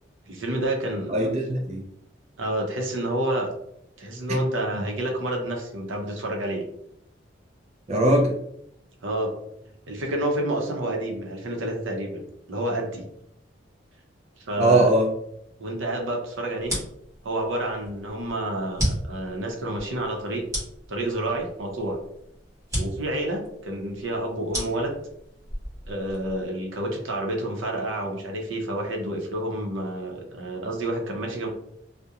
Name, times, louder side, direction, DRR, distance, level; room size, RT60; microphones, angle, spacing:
voice 1, 0.3-1.1 2.4-3.5 4.0-6.6 9.0-9.3 9.9-13.0 14.4-14.9 15.6-16.7 17.2-20.4 20.9-22.0 22.8-24.9 25.9-31.5, right 1 dB, 80° right, 1 dB, 0.6 m, -29 dB
voice 2, 1.1-1.8 4.3-4.4 4.7-4.9 7.9-8.4 14.6-15.1, right 1 dB, 35° right, -2 dB, 0.4 m, -21 dB
sound 1, 16.6-26.5, equal, 15° right, 0.9 m, -34 dB
2.4 x 2.1 x 2.8 m, 0.73 s
head